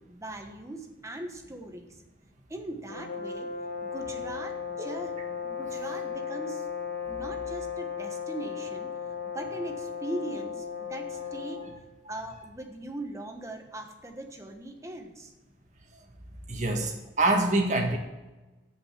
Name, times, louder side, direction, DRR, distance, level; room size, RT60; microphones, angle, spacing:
voice 1, 0.0-2.0 2.5-3.5 3.8-6.7 7.1-8.9 9.2-11.7 12.1-15.3, right 1 dB, 15° right, 3 dB, 1.2 m, -40 dB
sound 1, 2.9-11.8, left 6 dB, 60° left, 0.9 m, -36 dB
voice 2, 16.5-18.0, right 2 dB, 40° right, 2 dB, 1.7 m, -25 dB
8.2 x 7.7 x 7.3 m, 1.1 s
head